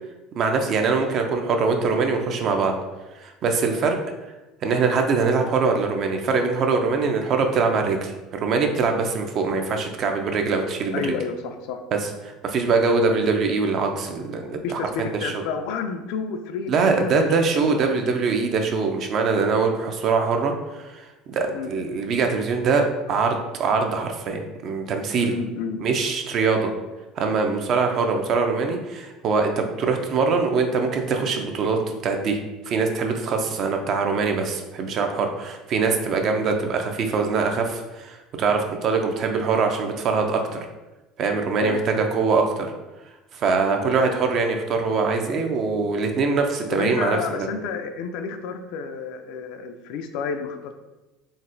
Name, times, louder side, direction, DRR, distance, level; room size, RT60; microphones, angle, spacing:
voice 1, 0.4-2.7 3.2-4.0 4.6-11.1 11.9-15.3 16.7-25.3 25.8-26.7 27.2-32.4 32.7-40.6 41.2-42.7 43.3-47.5, right 4 dB, 50° right, 4 dB, 0.4 m, -23 dB
voice 2, 10.9-11.8 14.6-17.3 17.5-18.0 21.5-21.7 25.2-25.8 41.6-41.8 46.7-50.8, left 5 dB, 70° left, 7 dB, 0.3 m, -30 dB
3.9 x 2.1 x 2.5 m, 1.1 s
supercardioid pair, 100°, 0 cm